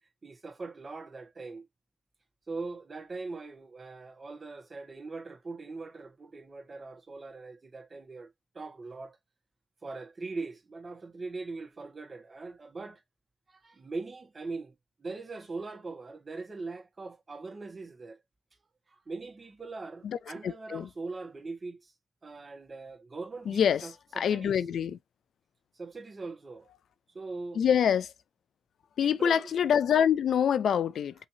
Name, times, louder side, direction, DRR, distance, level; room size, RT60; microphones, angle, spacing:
voice 1, 0.2-1.6 2.5-9.2 9.8-13.0 13.5-18.2 18.9-21.9 22.2-24.5 25.7-26.7 27.1-27.6 29.0-29.5, right 3 dB, 40° right, 1.6 m, -41 dB
voice 2, 20.4-20.9 23.5-25.0 27.5-28.1 29.0-31.1, left 8 dB, 80° left, 0.4 m, -26 dB
5.6 x 2.8 x 2.8 m
cardioid pair, 65°, 0 cm